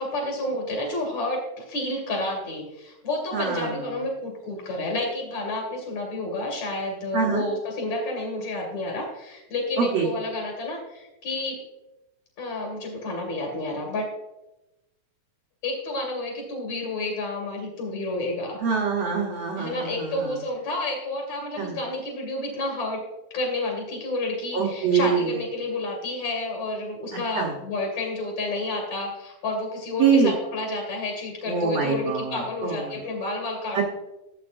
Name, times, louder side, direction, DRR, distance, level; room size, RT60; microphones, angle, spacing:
voice 1, 0.0-11.6 12.4-14.1 15.6-18.6 19.6-23.0 23.3-33.8, left 2 dB, 50° left, -1 dB, 2.9 m, -30 dB
voice 2, 3.3-3.9 7.1-7.4 9.8-10.1 18.6-20.4 21.6-21.8 24.5-25.3 27.3-27.5 30.0-30.3 31.5-33.0 33.7-33.8, right 5 dB, 80° right, -1 dB, 1.4 m, -24 dB
14.5 x 8.0 x 2.6 m, 0.98 s
omnidirectional pair, 4.6 m